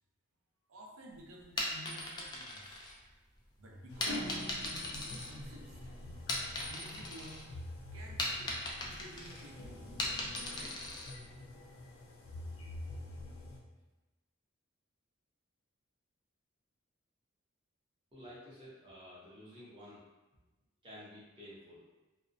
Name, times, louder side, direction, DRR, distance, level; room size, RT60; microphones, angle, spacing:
voice 1, 0.7-2.8 3.6-5.8 6.6-7.5 7.9-8.5 8.8-9.9 10.5-10.8, equal, 70° right, -1 dB, 0.5 m, -52 dB
sound 1, 1.4-3.4 4.0-5.8 6.1-7.4 7.8-11.2, left 2 dB, 20° left, 0.3 m, -39 dB
sound 2, 3.9-13.6, left 1 dB, 85° left, 0.4 m, -48 dB
sound 3, 4.1-6.6, left 1 dB, 60° left, 0.8 m, -44 dB
voice 2, 18.1-20.0 20.8-21.8, equal, 25° right, -8 dB, 0.6 m, -52 dB
2.4 x 2.0 x 2.5 m, 1.1 s
head